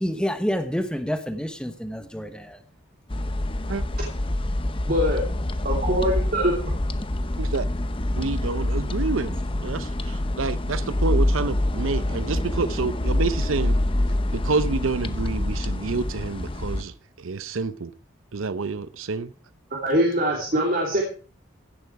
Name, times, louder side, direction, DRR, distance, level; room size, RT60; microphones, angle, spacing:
voice 1, 0.0-2.6, equal, 5° left, 1.0 m, -28 dB
sound 1, 3.1-16.8, left 1 dB, 25° left, 0.7 m, -26 dB
voice 2, 4.9-5.2 5.6-6.5 19.8-21.0, equal, 45° right, 3.0 m, -22 dB
voice 3, 8.1-9.3 9.6-13.7 14.3-16.9 17.2-17.9 18.3-19.3, right 4 dB, 80° right, 0.7 m, -28 dB
16.0 x 10.5 x 4.7 m
head